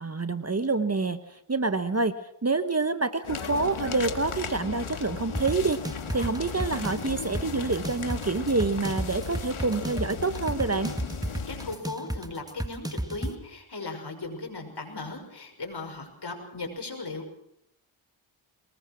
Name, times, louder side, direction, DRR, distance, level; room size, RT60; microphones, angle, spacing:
voice 1, 0.0-2.1 2.4-10.9, right 3 dB, 30° right, 11 dB, 1.1 m, -27 dB
sound 1, 3.2-11.8, left 6 dB, 75° left, 2.1 m, -36 dB
sound 2, 5.4-13.4, right 1 dB, 5° right, 1.5 m, -33 dB
voice 2, 11.5-17.4, left 3 dB, 50° left, 3 dB, 6.4 m, -37 dB
22.5 x 20.5 x 6.3 m, 0.73 s
cardioid pair, 60°, 50 cm